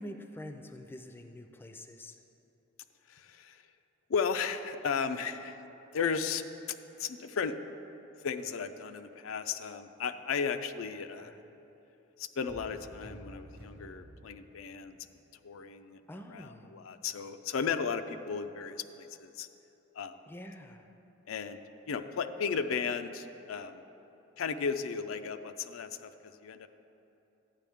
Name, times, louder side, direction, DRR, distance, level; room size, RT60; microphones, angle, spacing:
voice 1, 0.0-2.1 11.2-11.4 16.1-16.7 20.3-20.9, left 1 dB, 10° left, 6 dB, 0.4 m, -46 dB
voice 2, 3.1-3.6 4.1-5.6 5.9-6.4 7.0-7.6 8.2-11.3 12.2-15.0 15.4-16.0 16.3-19.5 20.0-20.2 21.3-21.6 21.9-23.8 24.4-26.1 26.4-26.7, left 6 dB, 90° left, 9 dB, 0.4 m, -35 dB
sound 1, 12.3-16.2, right 1 dB, 50° right, 0.9 m, -52 dB
11.5 x 9.0 x 3.6 m, 2.9 s
head